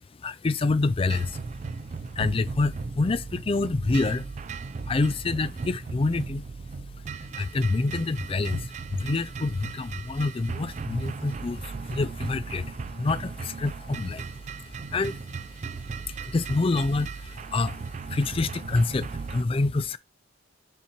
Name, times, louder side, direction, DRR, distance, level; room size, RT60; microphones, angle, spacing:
voice 1, 0.2-1.4 2.1-4.3 4.9-6.5 7.2-14.4 14.6-15.2 15.6-20.0, left 3 dB, 30° left, 0.4 m, -27 dB
sound 1, 1.1-19.4, right 4 dB, 40° right, 0.4 m, -37 dB
5.7 x 4.3 x 4.5 m
head